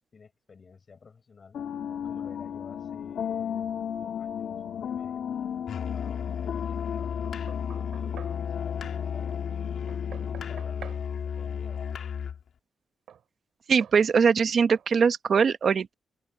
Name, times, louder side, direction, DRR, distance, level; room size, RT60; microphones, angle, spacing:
voice 1, 0.1-1.6 2.0-5.3 5.9-9.4 9.8-11.9, left 5 dB, 35° left, 7.0 m, -53 dB
sound 1, 1.5-10.6, left 8 dB, 85° left, 1.5 m, -35 dB
Musical instrument, 5.7-12.4, left 7 dB, 65° left, 2.1 m, -33 dB
Knock, 7.2-8.4 9.9-11.1 13.1-13.2 13.8-14.0 14.7-14.9, right 9 dB, 90° right, 2.4 m, -47 dB
voice 2, 13.7-15.9, right 6 dB, 45° right, 1.0 m, -22 dB
wide cardioid pair, 170°, 0 cm